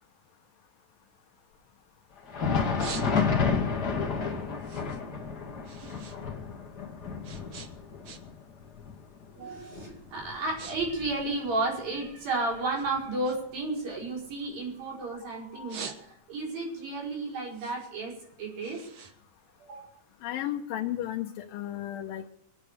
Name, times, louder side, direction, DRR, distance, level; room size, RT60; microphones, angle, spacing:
sound 1, 1.0-2.2 2.5-3.6 4.0-6.2 6.5-8.5 8.8-9.2 9.8-9.9 10.2-10.8 11.0-12.3 12.7-15.1 15.5-16.5 16.9-20.0, right 6 dB, 60° right, 1.3 m, -45 dB
Thunder, 2.2-11.6 12.0-12.1 12.8-13.0 14.0-14.1, left 5 dB, 35° left, 2.2 m, -31 dB
voice 1, 9.4-18.8 19.6-19.9, right 2 dB, 85° right, -3 dB, 6.8 m, -33 dB
voice 2, 20.2-22.3, left 12 dB, 90° left, 3 dB, 2.6 m, -33 dB
23.0 x 8.2 x 6.7 m, 0.70 s
omnidirectional pair, 4.0 m